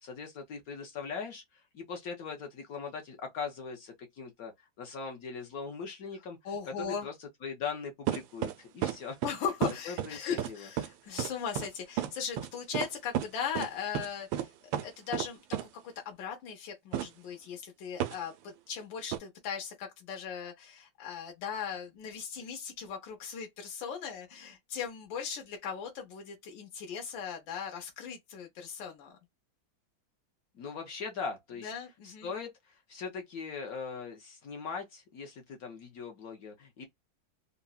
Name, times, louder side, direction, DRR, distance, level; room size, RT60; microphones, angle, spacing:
voice 1, 0.0-4.5 4.8-6.4 6.8-9.2 9.8-10.7 30.5-31.7 32.0-36.8, left 5 dB, 60° left, 1.0 m, -40 dB
voice 2, 6.4-7.1 9.2-15.6 16.0-29.2 31.6-32.3, left 7 dB, 85° left, 1.5 m, -38 dB
sound 1, 8.1-8.5 8.8-9.0 9.2-9.3 9.6-10.1 10.4-10.5 10.8-10.9 11.2-11.3 11.6-11.7 12.0-12.1 12.4-12.5 12.7-12.9 13.2-13.3 13.6-13.7 14.0-14.1 14.3-14.5 14.7-14.9 15.1-15.3 15.5-15.6 16.9-17.1 18.0-18.2 19.1-19.2, right 11 dB, 85° right, 1.3 m, -31 dB
3.8 x 2.0 x 2.3 m
omnidirectional pair, 2.0 m